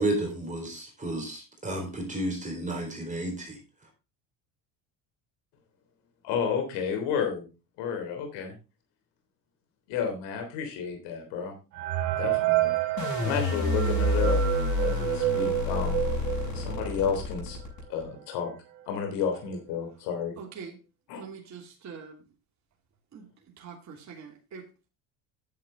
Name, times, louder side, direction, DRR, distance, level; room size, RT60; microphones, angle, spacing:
voice 1, 0.0-3.6, right 1 dB, 15° right, 4.0 m, -32 dB
voice 2, 6.2-7.5 7.8-8.5 9.9-11.5 12.2-12.7 13.2-14.4 14.8-16.0 16.5-17.6 17.9-18.5 18.9-20.3 21.1-21.2, left 7 dB, 75° left, 3.3 m, -31 dB
sound 1, 11.7-17.2 17.6-17.7 17.9-18.1 18.8-18.9 19.3-19.6, right 15 dB, 85° right, 2.2 m, -29 dB
sound 2, 13.0-18.0, left 2 dB, 45° left, 6.7 m, -28 dB
voice 3, 20.4-20.8 21.1-22.2 23.1-23.3 23.6-24.9, right 6 dB, 40° right, 2.8 m, -44 dB
10.5 x 7.7 x 3.7 m
supercardioid pair, 100°, 42 cm